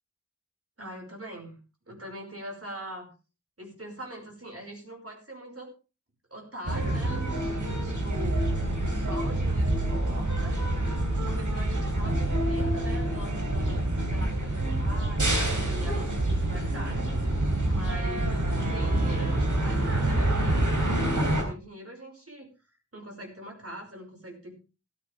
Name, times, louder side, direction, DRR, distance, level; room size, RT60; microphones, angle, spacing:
voice 1, 0.8-1.6 1.9-3.1 3.6-5.7 6.3-8.6 8.9-10.6 11.2-21.1 21.4-22.5 22.9-24.5, equal, 50° right, 3 dB, 5.3 m, -42 dB
sound 1, 6.6-21.4, right 1 dB, 85° right, 3.7 m, -27 dB
15.5 x 14.0 x 3.4 m, 0.32 s
wide cardioid pair, 40°, 30 cm